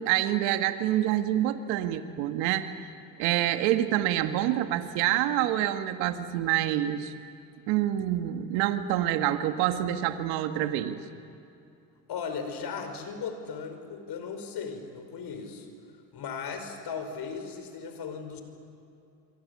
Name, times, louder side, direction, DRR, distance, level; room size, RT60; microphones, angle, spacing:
voice 1, 0.0-2.7 3.2-7.1 7.7-11.0, right 12 dB, 80° right, 8 dB, 1.7 m, -27 dB
voice 2, 12.1-15.7 16.1-18.4, left 6 dB, 55° left, 7 dB, 5.6 m, -37 dB
29.0 x 24.0 x 8.5 m, 2.6 s
supercardioid pair, 75°, 46 cm